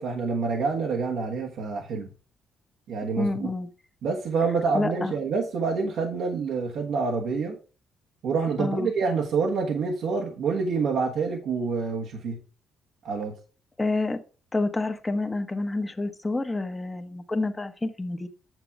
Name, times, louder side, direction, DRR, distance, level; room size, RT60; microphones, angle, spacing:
voice 1, 0.0-2.1 2.9-3.5 4.0-7.6 8.2-12.4 13.0-13.3, right 4 dB, 75° right, 1.3 m, -27 dB
voice 2, 3.2-3.7 4.7-5.1 8.6-8.9 13.8-14.2 14.5-18.3, left 2 dB, 20° left, 1.2 m, -28 dB
9.2 x 6.8 x 3.6 m
cardioid pair, 90°, 0 cm